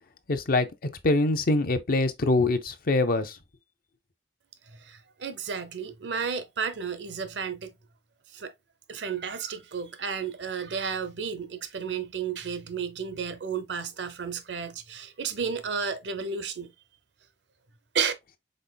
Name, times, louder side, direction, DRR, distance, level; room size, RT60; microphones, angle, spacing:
voice 1, 0.3-3.4, left 2 dB, 55° left, 0.7 m, -24 dB
voice 2, 4.8-7.7 8.3-8.5 8.9-16.7 17.9-18.1, right 6 dB, 85° right, 0.8 m, -32 dB
5.4 x 4.0 x 2.2 m
head